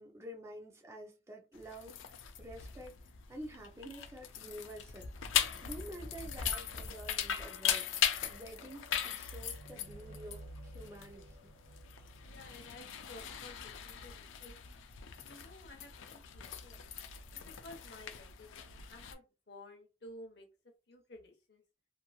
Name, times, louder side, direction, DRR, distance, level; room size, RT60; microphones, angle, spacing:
voice 1, 0.0-3.0 3.3-5.1 5.4-11.5, right 1 dB, 15° right, 0.5 m, -49 dB
sound 1, 1.5-19.1, left 9 dB, 85° left, 0.4 m, -39 dB
sound 2, 4.6-14.1 14.9-15.0, right 1 dB, 85° right, 1.2 m, -56 dB
voice 2, 12.2-14.6 15.2-16.9 17.4-18.6 18.9-20.5 20.9-21.6, left 1 dB, 55° left, 0.8 m, -53 dB
2.9 x 2.5 x 2.3 m
head